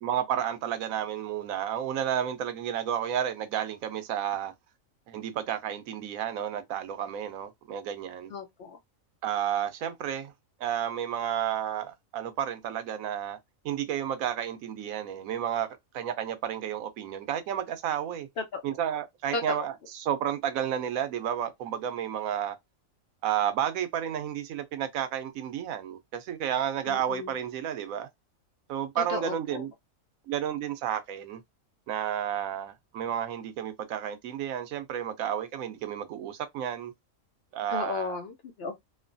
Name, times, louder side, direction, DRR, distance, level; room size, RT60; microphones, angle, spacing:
voice 1, 0.0-4.5 5.1-8.3 9.2-10.3 10.6-13.4 13.6-18.3 18.6-22.6 23.2-28.1 28.7-29.7 30.3-31.4 31.9-36.9 37.5-38.2, right 9 dB, 90° right, 1.0 m, -31 dB
voice 2, 8.3-8.8 18.4-18.8 19.3-19.7 26.9-27.3 29.0-29.6 37.7-38.7, left 4 dB, 60° left, 0.7 m, -35 dB
3.0 x 2.1 x 2.5 m
omnidirectional pair, 1.4 m